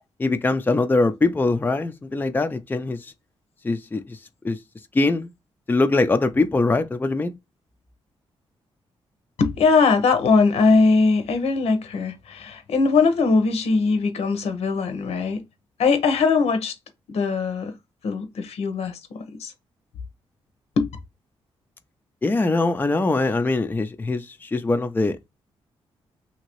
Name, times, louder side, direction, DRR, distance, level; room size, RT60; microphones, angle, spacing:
voice 1, 0.2-3.1 3.6-4.2 4.4-4.6 4.9-5.3 5.7-7.3 22.2-25.2, left 3 dB, 20° left, 0.5 m, -22 dB
voice 2, 9.4-15.4 15.8-16.8 17.1-17.7 18.0-19.5 20.8-20.9, left 4 dB, 80° left, 0.9 m, -20 dB
2.9 x 2.7 x 3.0 m
cardioid pair, 80°, 11 cm